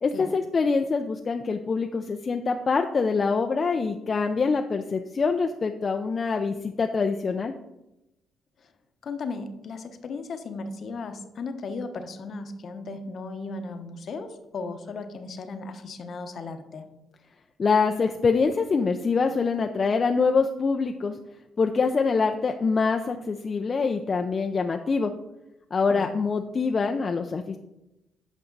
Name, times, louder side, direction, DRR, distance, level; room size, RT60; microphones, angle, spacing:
voice 1, 0.0-7.5 17.6-21.1 21.6-25.1 25.7-27.6, left 4 dB, 40° left, 5 dB, 0.4 m, -25 dB
voice 2, 9.0-16.8 25.9-26.1, left 3 dB, 55° left, 8 dB, 0.9 m, -36 dB
8.4 x 5.4 x 3.9 m, 0.93 s
cardioid pair, 90°, 0 cm